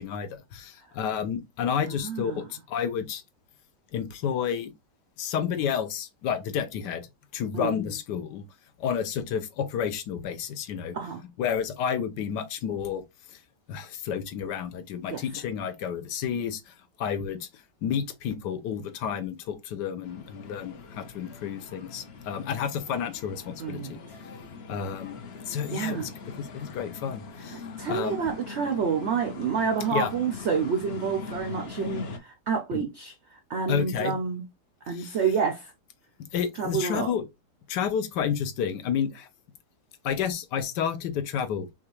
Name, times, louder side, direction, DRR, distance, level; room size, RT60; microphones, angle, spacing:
voice 1, 0.0-3.2 3.9-4.7 5.2-7.1 7.3-8.4 8.8-11.0 11.4-13.0 13.3-13.4 13.7-24.0 24.7-25.2 25.5-26.1 26.4-28.2 29.9-30.1 32.7-32.8 33.7-34.2 34.9-35.2 36.3-37.2 37.7-39.3 40.0-41.7, left 8 dB, 80° left, 1.3 m, -30 dB
voice 2, 1.8-2.4 7.5-7.7 10.9-11.2 15.1-15.2 23.6-24.0 25.7-26.1 27.5-33.1 33.5-34.4 34.8-35.7 36.6-37.1, right 6 dB, 75° right, 0.6 m, -29 dB
sound 1, 20.0-32.2, left 4 dB, 55° left, 0.7 m, -42 dB
5.7 x 2.4 x 3.0 m
omnidirectional pair, 1.8 m